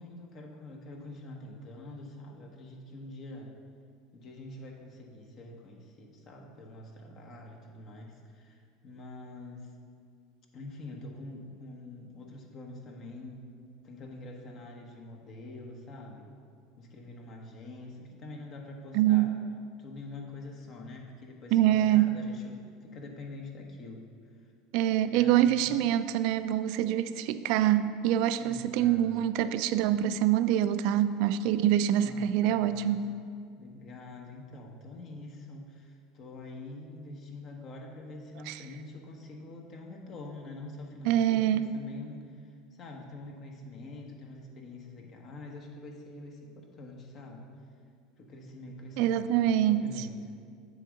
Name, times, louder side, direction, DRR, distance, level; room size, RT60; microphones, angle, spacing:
voice 1, 0.0-3.5 4.1-9.7 10.5-13.5 13.8-16.3 16.8-19.3 19.8-24.0 24.4-24.5 25.1-25.9 28.4-29.0 31.9-33.0 33.6-47.5 48.2-50.2, left 2 dB, 45° left, 1 dB, 1.2 m, -45 dB
voice 2, 18.9-19.3 21.5-22.1 24.7-33.1 38.5-38.6 41.0-41.7 49.0-50.1, right 11 dB, 65° right, 12 dB, 0.3 m, -25 dB
7.6 x 3.6 x 6.4 m, 2.1 s
hypercardioid pair, 85°, 0 cm